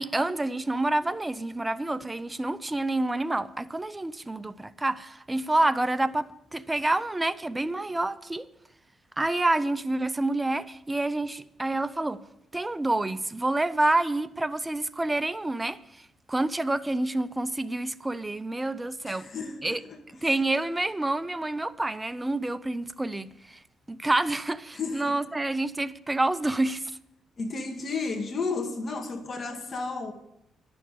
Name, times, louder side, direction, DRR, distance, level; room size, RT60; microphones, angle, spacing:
voice 1, 0.0-8.5 9.2-12.2 12.5-15.8 16.3-19.3 19.6-19.8 20.2-23.6 23.9-26.9, right 2 dB, 15° right, 0.6 m, -28 dB
voice 2, 19.1-20.3 24.7-25.2 27.4-30.1, left 4 dB, 45° left, 2.0 m, -33 dB
11.0 x 7.1 x 8.3 m
cardioid pair, 90°, 0 cm